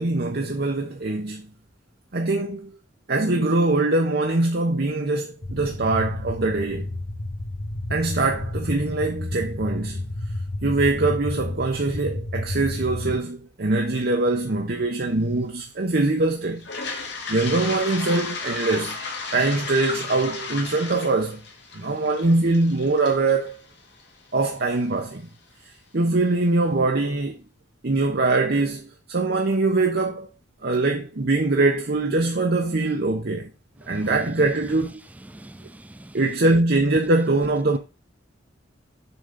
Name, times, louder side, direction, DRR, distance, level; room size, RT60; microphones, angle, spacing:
voice 1, 0.0-1.5 2.1-2.7 3.1-6.9 7.9-10.0 10.6-16.6 17.3-19.0 19.3-21.4 21.7-23.6 24.3-25.2 25.9-27.4 27.8-30.3 30.6-33.5 33.9-35.0 36.1-37.8, right 2 dB, 55° right, 0.9 m, -23 dB
sound 1, 5.4-13.2, left 1 dB, 90° left, 1.1 m, -31 dB
Toilet flush, 16.6-24.5, left 4 dB, 65° left, 2.1 m, -34 dB
voice 2, 33.8-34.8 35.1-36.2, right 1 dB, 10° right, 0.4 m, -43 dB
7.1 x 3.9 x 5.2 m
head